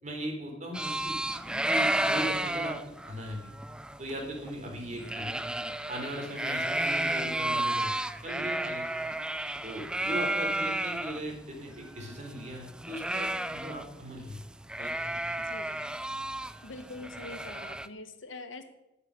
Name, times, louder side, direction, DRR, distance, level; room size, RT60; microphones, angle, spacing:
voice 1, 0.0-1.2 1.7-2.8 3.1-3.5 4.0-5.4 5.9-7.9 8.2-8.9 9.6-14.4 14.8-15.2, right 1 dB, 40° right, 2 dB, 3.7 m, -38 dB
sound 1, 0.7-11.2 11.5-11.6 11.9-14.0 14.3-14.4 14.7-17.9, right 1 dB, 5° right, 0.4 m, -32 dB
voice 2, 15.4-15.7 16.6-18.6, left 2 dB, 85° left, 8 dB, 1.6 m, -44 dB
12.0 x 6.9 x 9.8 m, 0.92 s
head